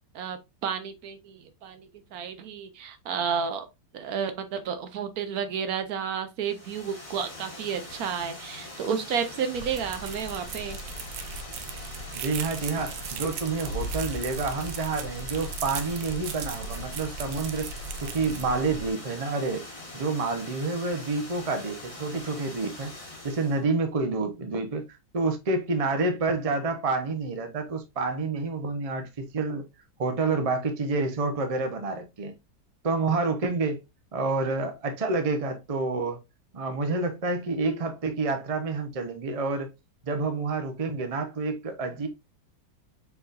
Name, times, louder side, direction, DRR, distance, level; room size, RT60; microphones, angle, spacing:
voice 1, 0.1-3.7 3.9-10.8, right 7 dB, 65° right, 1.0 m, -31 dB
Water, 6.4-23.6, left 2 dB, 20° left, 1.3 m, -43 dB
sound 1, 9.5-18.9, right 3 dB, 85° right, 1.3 m, -37 dB
voice 2, 12.2-17.7 18.0-19.6 19.9-22.9 23.2-24.8 25.1-29.6 30.0-32.3 32.8-33.8 34.1-36.2 36.5-39.7 40.1-42.1, right 3 dB, 45° right, 0.4 m, -28 dB
4.7 x 4.0 x 2.4 m
omnidirectional pair, 1.8 m